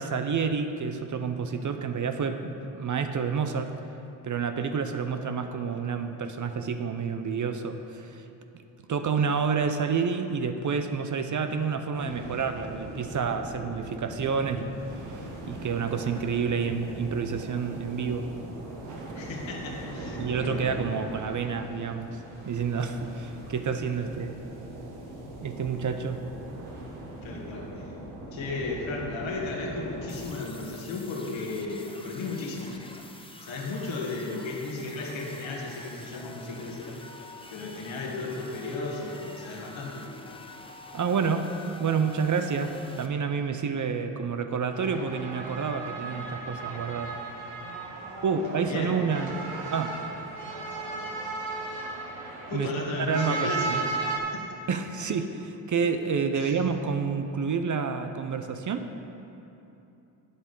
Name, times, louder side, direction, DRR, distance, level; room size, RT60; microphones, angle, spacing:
voice 1, 0.0-3.7 4.2-8.2 8.9-14.8 15.4-18.3 20.2-22.2 22.5-24.4 25.4-26.2 40.9-47.2 48.2-49.3 49.7-50.0 52.5-52.7 53.1-53.8 54.7-58.9, right 5 dB, 40° right, 8 dB, 0.7 m, -29 dB
sound 1, 11.9-30.3, right 1 dB, 85° right, 1.7 m, -40 dB
voice 2, 19.1-20.8 27.2-27.9 28.3-32.8 33.4-37.0 37.5-40.0 48.6-49.0 52.5-53.9 54.3-54.5 56.3-56.6, left 3 dB, 75° left, -2 dB, 2.0 m, -35 dB
sound 2, 30.1-43.1, left 2 dB, 10° left, 0.9 m, -47 dB
sound 3, 44.7-54.2, right 3 dB, 65° right, 1.6 m, -35 dB
9.1 x 7.7 x 5.4 m, 2.9 s
supercardioid pair, 55°, 47 cm